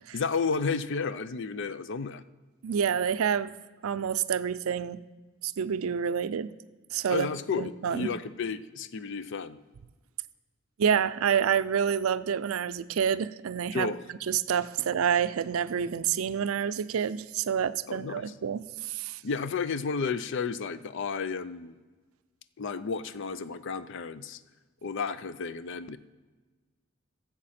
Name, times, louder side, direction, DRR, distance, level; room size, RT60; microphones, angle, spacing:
voice 1, 0.1-2.2 7.1-9.6 13.7-14.0 17.9-18.2 19.2-21.8 22.6-24.4 24.8-26.0, left 5 dB, 60° left, 14 dB, 0.5 m, -32 dB
voice 2, 2.6-3.5 3.8-5.0 5.4-6.5 6.9-7.3 7.6-8.1 10.8-13.9 14.3-19.2, right 7 dB, 85° right, 14 dB, 0.4 m, -28 dB
15.5 x 7.4 x 4.3 m, 1.3 s
head